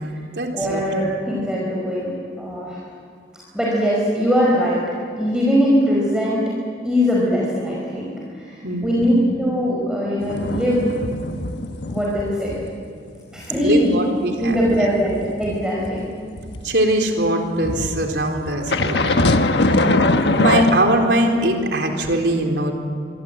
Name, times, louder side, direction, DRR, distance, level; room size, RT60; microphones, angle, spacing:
voice 1, 0.0-1.1 8.6-9.1 13.6-14.9 16.6-20.0 20.2-22.7, right 1 dB, 75° right, 2 dB, 4.1 m, -22 dB
voice 2, 0.5-2.8 3.5-4.8 5.2-6.4 6.8-8.1 8.4-10.9 11.9-12.5 13.3-13.9 14.4-16.1, equal, 5° right, -5 dB, 5.0 m, -21 dB
sound 1, 10.2-12.1 12.4-12.7 13.1-16.7 17.6-20.7, left 2 dB, 70° left, 1.3 m, -22 dB
27.0 x 22.5 x 8.9 m, 2.3 s
head